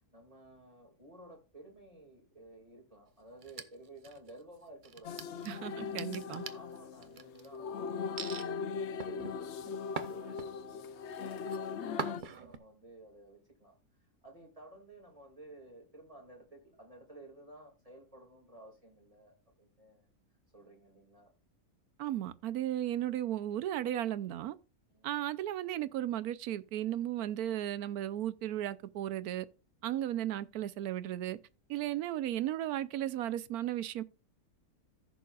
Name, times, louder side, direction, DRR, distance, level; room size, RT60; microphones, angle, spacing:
voice 1, 0.1-5.2 6.3-8.7 8.9-20.1 20.5-21.3 24.9-25.2, right 2 dB, 25° right, 2.3 m, -55 dB
sound 1, 3.4-4.4 4.8-7.5 8.2-8.5 9.0-10.8 11.2-11.6 12.0-12.6, right 5 dB, 45° right, 0.7 m, -42 dB
sound 2, 5.0-12.2, left 6 dB, 60° left, 0.8 m, -39 dB
voice 2, 5.4-6.4 22.0-24.6 25.0-29.5 29.8-31.4 31.7-34.0, right 12 dB, 85° right, 1.1 m, -35 dB
15.0 x 7.0 x 2.4 m
omnidirectional pair, 1.6 m